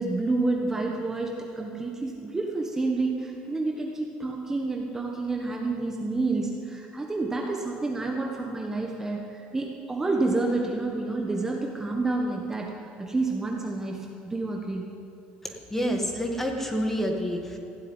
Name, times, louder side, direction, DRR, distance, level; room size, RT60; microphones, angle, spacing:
voice 1, 0.0-14.9, right 3 dB, 15° right, 0 dB, 1.3 m, -29 dB
voice 2, 15.7-17.6, equal, 10° left, 3 dB, 1.7 m, -28 dB
16.0 x 7.7 x 9.7 m, 2.8 s
cardioid pair, 135°, 3 cm